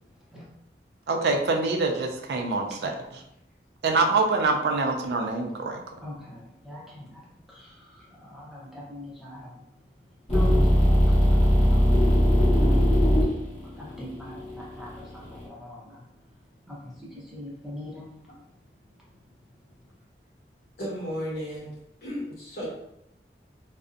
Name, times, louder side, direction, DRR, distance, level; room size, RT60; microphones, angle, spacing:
voice 1, 1.1-3.0 3.8-5.8, right 3 dB, 70° right, 3 dB, 0.3 m, -25 dB
voice 2, 2.8-3.2 6.0-9.6 10.3-13.4 13.7-16.0 16.7-18.1, left 1 dB, ahead, -6 dB, 0.5 m, -42 dB
sound 1, 10.3-15.4, equal, 35° left, 1.0 m, -20 dB
voice 3, 20.8-21.7 22.0-22.7, equal, 55° left, -7 dB, 1.2 m, -33 dB
2.5 x 2.0 x 2.4 m, 0.78 s
head